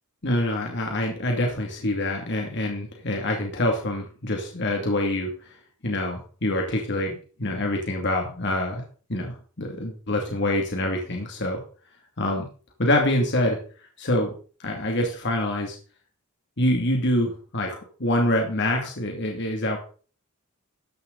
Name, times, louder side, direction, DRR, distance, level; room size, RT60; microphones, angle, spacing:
voice 1, 0.2-5.5 5.8-8.8 9.1-11.6 12.2-12.5 12.8-13.6 14.0-14.3 14.6-15.8 16.6-19.8, left 1 dB, 55° left, 1 dB, 2.5 m, -25 dB
14.5 x 10.5 x 4.0 m, 0.41 s
head